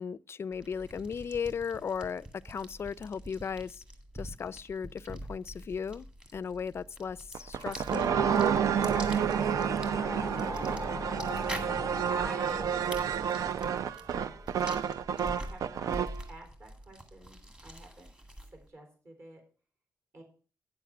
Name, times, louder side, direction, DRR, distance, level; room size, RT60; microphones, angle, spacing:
voice 1, 0.0-3.8 4.1-6.1 6.3-8.2, left 6 dB, 45° left, 0.4 m, -36 dB
sound 1, 0.5-18.7, equal, 15° right, 1.9 m, -46 dB
sound 2, 7.3-16.2, right 8 dB, 75° right, 0.5 m, -30 dB
sound 3, 8.1-14.5, left 2 dB, 10° left, 0.7 m, -39 dB
voice 2, 12.1-12.8 14.1-15.9 16.3-18.1 18.5-19.4 20.1-20.2, right 1 dB, 50° right, 3.9 m, -48 dB
9.0 x 7.2 x 5.9 m
cardioid pair, 90°, 6 cm